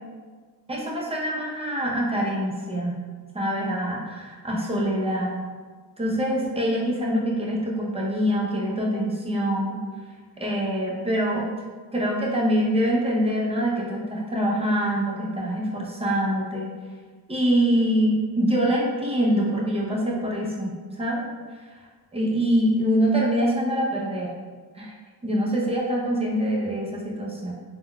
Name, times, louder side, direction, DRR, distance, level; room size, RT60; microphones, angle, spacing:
voice 1, 0.7-3.0 3.3-5.4 6.0-9.8 10.4-11.5 11.9-16.7 17.3-21.3 22.1-24.3 24.7-24.9 25.2-27.5, equal, 15° right, -3 dB, 0.6 m, -24 dB
3.6 x 2.2 x 2.2 m, 1.5 s
cardioid pair, 65°, 42 cm